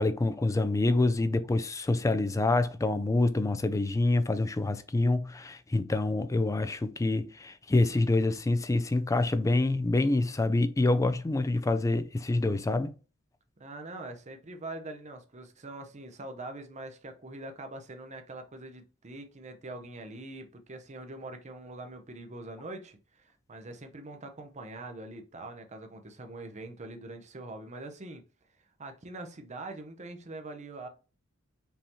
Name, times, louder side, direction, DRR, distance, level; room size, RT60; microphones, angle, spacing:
voice 1, 0.0-12.9, left 2 dB, 15° left, 0.3 m, -26 dB
voice 2, 13.6-28.2 28.8-30.9, right 2 dB, 35° right, 0.7 m, -43 dB
5.4 x 2.8 x 2.9 m
head